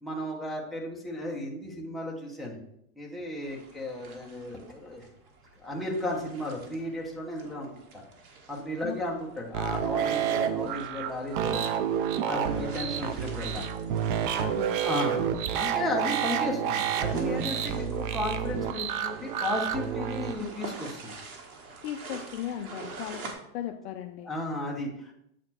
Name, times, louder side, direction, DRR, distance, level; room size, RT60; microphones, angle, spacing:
voice 1, 0.0-2.6 3.0-5.1 5.6-8.0 8.5-11.7 12.2-13.6 14.8-15.3 15.5-21.1 24.2-25.1, left 1 dB, ahead, -4 dB, 0.9 m, -34 dB
sound 1, 3.4-23.3, right 4 dB, 90° right, 1.8 m, -47 dB
sound 2, 9.5-20.3, right 8 dB, 40° right, 0.4 m, -29 dB
voice 2, 14.3-14.8 21.8-24.3, left 11 dB, 50° left, 7 dB, 0.5 m, -37 dB
7.8 x 4.2 x 4.3 m, 0.76 s
supercardioid pair, 150°, 44 cm